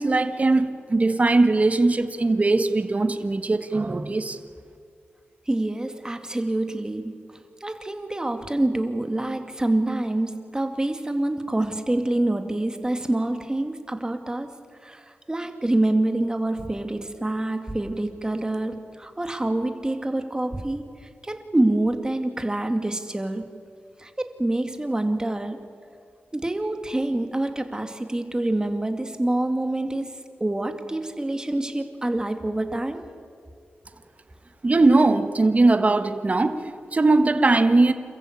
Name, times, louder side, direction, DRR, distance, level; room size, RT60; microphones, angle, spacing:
voice 1, 0.0-4.4 34.6-37.9, right 2 dB, 35° right, 9 dB, 1.5 m, -20 dB
voice 2, 5.5-7.3 7.6-14.5 14.8-23.4 24.0-25.6 26.3-30.1 30.4-33.0, right 1 dB, 20° right, 7 dB, 2.2 m, -26 dB
28.0 x 14.5 x 8.6 m, 2.4 s
cardioid pair, 70°, 4 cm